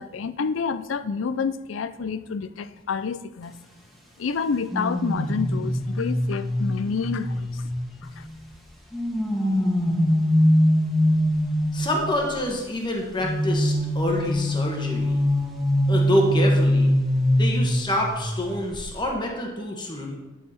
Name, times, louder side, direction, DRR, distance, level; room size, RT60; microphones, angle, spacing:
voice 1, 0.0-3.5 4.2-7.6 8.2-8.3, left 5 dB, 80° left, 13 dB, 0.5 m, -28 dB
sound 1, 4.7-8.3 8.9-12.2 13.2-18.4 18.7-19.0, equal, ahead, 1.5 m, -23 dB
voice 2, 11.7-15.2 15.9-16.9 17.4-20.1, left 1 dB, 25° left, 0 dB, 1.2 m, -27 dB
10.0 x 5.8 x 4.3 m, 1.0 s
head